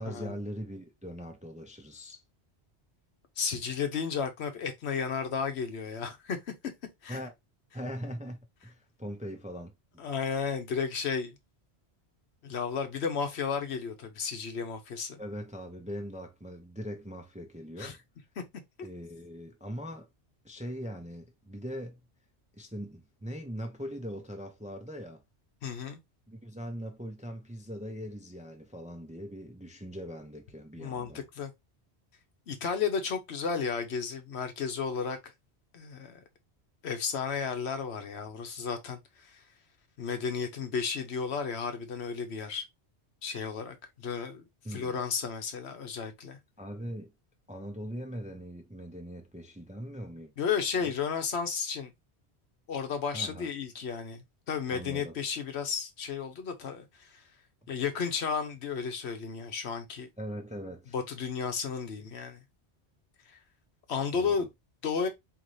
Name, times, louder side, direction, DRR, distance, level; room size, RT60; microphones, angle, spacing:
voice 1, 0.0-2.2 7.1-7.3 7.7-9.7 15.2-18.0 18.8-20.1 20.4-22.0 22.5-25.2 26.3-31.2 44.6-45.0 46.6-47.1 47.5-50.3 50.7-50.9 53.1-53.5 54.7-55.2 60.2-60.9 64.1-64.5, equal, 10° right, 0.5 m, -41 dB
voice 2, 3.4-6.5 7.0-7.2 10.0-11.3 12.4-15.2 17.8-18.0 25.6-26.0 30.8-31.1 31.3-31.5 32.5-35.3 35.7-36.2 36.8-39.4 40.0-42.6 43.2-46.4 50.4-51.9 52.7-57.2 57.7-60.1 60.9-62.4 63.9-64.5 64.8-65.1, left 6 dB, 75° left, 1.1 m, -33 dB
4.0 x 3.1 x 3.1 m
omnidirectional pair, 1.1 m